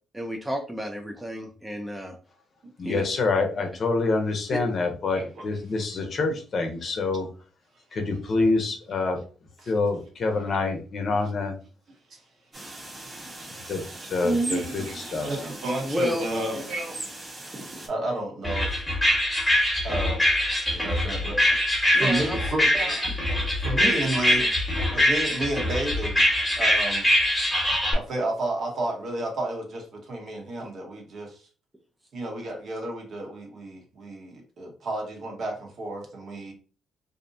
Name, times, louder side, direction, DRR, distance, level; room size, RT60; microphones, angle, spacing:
voice 1, 0.1-2.2 2.8-3.0 4.5-4.6 15.8-16.2 21.9-22.4 23.4-23.9, equal, 10° right, 0.4 m, -31 dB
voice 2, 2.8-7.3 7.9-9.2 9.7-11.5 13.7-13.8 14.1-15.3, left 3 dB, 50° left, 0.6 m, -26 dB
sound 1, 12.5-17.9, right 2 dB, 35° right, 0.9 m, -39 dB
voice 3, 13.2-13.5 14.0-17.1 17.9-18.8 19.8-20.2 20.7-21.4 21.9-23.2 23.6-24.5 24.9-26.2 26.6-27.4 27.9-31.4 32.1-36.5, right 2 dB, 60° right, 1.0 m, -31 dB
sound 2, 18.4-27.9, left 1 dB, 10° left, 1.0 m, -23 dB
2.6 x 2.1 x 2.6 m
cardioid pair, 90°, 0 cm